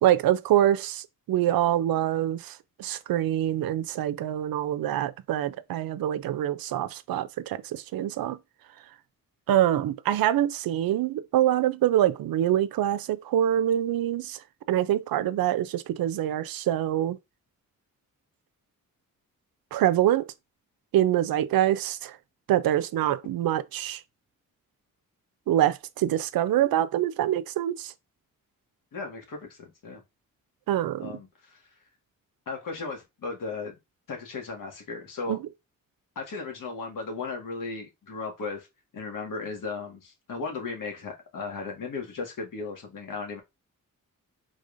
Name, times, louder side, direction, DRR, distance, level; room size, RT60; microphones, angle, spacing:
voice 1, 0.0-8.4 9.5-14.4 14.7-17.2 19.7-20.3 20.9-22.2 22.5-24.0 25.5-27.9 30.7-31.1 35.3-35.4, right 12 dB, 90° right, 0.6 m, -25 dB
voice 2, 28.9-30.0 31.0-31.6 32.5-33.7 34.1-35.4 36.2-38.7 38.9-43.4, left 4 dB, 70° left, 1.8 m, -36 dB
5.2 x 3.5 x 2.6 m
cardioid pair, 85°, 34 cm